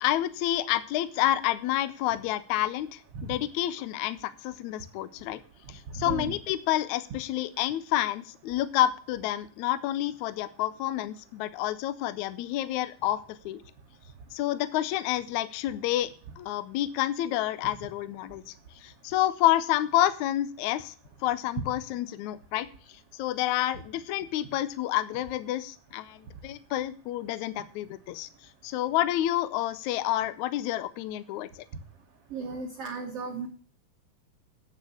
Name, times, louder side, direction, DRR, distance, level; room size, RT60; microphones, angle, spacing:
voice 1, 0.0-5.4 5.7-13.6 14.3-20.9 21.2-22.7 23.1-28.3 28.6-31.6, left 13 dB, 75° left, 13 dB, 1.8 m, -29 dB
voice 2, 5.9-6.3 21.6-21.7 32.3-33.5, right 4 dB, 60° right, 2 dB, 1.8 m, -34 dB
9.2 x 6.7 x 8.3 m, 0.43 s
omnidirectional pair, 4.0 m